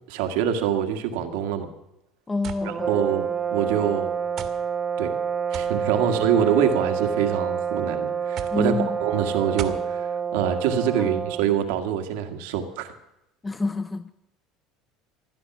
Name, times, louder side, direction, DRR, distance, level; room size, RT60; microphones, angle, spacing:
voice 1, 0.1-1.7 2.6-4.1 5.0-5.1 5.5-12.9, right 8 dB, 80° right, 1.7 m, -25 dB
voice 2, 2.3-3.0 6.0-6.1 8.5-8.9 11.0-11.1 13.4-14.1, left 3 dB, 20° left, 0.5 m, -28 dB
sound 1, 2.4-2.7 3.6-3.7 4.4-4.6 5.5-5.8 6.8-7.2 8.4-8.6 9.6-9.9, right 9 dB, 55° right, 1.7 m, -35 dB
sound 2, 2.6-11.6, right 7 dB, 25° right, 0.7 m, -28 dB
16.5 x 11.5 x 6.1 m
supercardioid pair, 95°, 0 cm